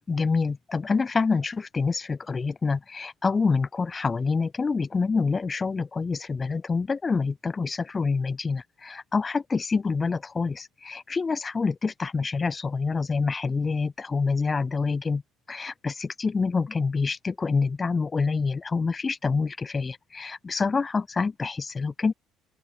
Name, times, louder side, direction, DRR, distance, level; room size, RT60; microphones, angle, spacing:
voice 1, 0.1-15.2 15.5-22.1, left 4 dB, 25° left, 1.4 m, -27 dB
open air
cardioid pair, 105°, 0 cm